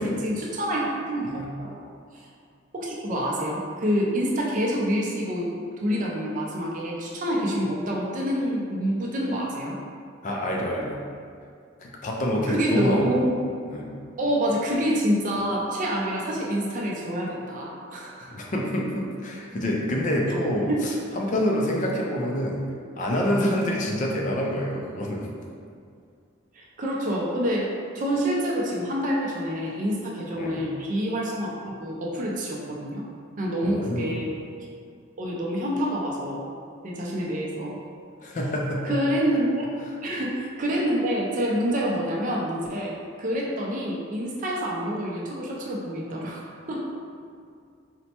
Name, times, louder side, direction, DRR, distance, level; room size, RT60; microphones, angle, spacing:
voice 1, 0.0-1.9 2.1-2.3 2.7-5.5 5.8-9.8 12.5-13.3 14.2-18.3 20.7-20.9 26.6-33.0 33.4-34.3 35.2-36.5 36.8-37.8 38.8-39.7 40.0-47.0, equal, 40° right, -3 dB, 0.4 m, -27 dB
voice 2, 10.2-11.0 11.8-13.2 13.7-13.9 18.3-22.6 22.9-25.3 30.4-30.7 33.6-34.2 38.2-39.0, equal, 40° left, -2 dB, 0.4 m, -27 dB
4.2 x 2.1 x 2.8 m, 2.3 s
head